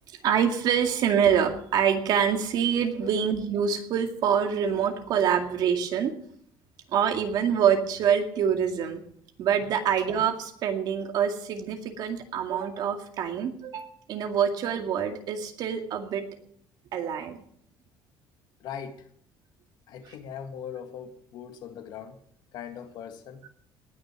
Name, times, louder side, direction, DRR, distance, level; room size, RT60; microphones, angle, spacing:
voice 1, 0.2-6.1 6.9-9.0 9.4-16.2 16.9-17.4, right 8 dB, 55° right, 2.2 m, -25 dB
voice 2, 18.6-19.1 19.9-22.2 22.5-23.4, left 8 dB, 60° left, 1.8 m, -40 dB
19.0 x 6.5 x 8.2 m
cardioid pair, 170°, 8 cm